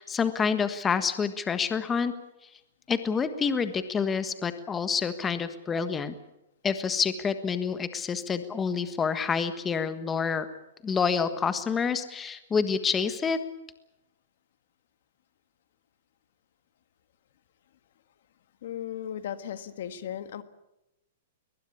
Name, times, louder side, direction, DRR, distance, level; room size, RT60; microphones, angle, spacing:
voice 1, 0.0-2.1 2.9-6.1 6.6-10.5 10.8-13.4, left 6 dB, 15° left, 10 dB, 1.4 m, -28 dB
voice 2, 18.6-20.4, left 10 dB, 65° left, 11 dB, 1.7 m, -36 dB
22.0 x 20.5 x 8.6 m, 0.90 s
hypercardioid pair, 145°, 0 cm